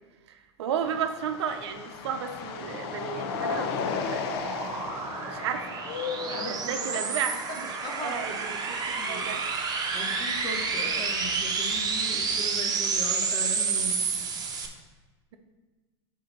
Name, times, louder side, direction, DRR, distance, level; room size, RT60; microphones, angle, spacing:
voice 1, 0.3-4.2 5.3-5.8 6.1-7.3 8.0-9.4, right 8 dB, 70° right, 7 dB, 0.7 m, -33 dB
sound 1, 0.8-9.4 9.8-10.0 10.7-11.1 12.6-12.7 13.0-14.0, left 6 dB, 60° left, 0.7 m, -36 dB
sound 2, 2.8-14.7, right 5 dB, 25° right, 1.0 m, -30 dB
voice 2, 6.2-7.0 7.8-8.4 9.0-9.3 9.9-14.1, left 2 dB, 30° left, 0 dB, 1.7 m, -39 dB
4.9 x 4.6 x 5.9 m, 1.3 s
hypercardioid pair, 90°, 14 cm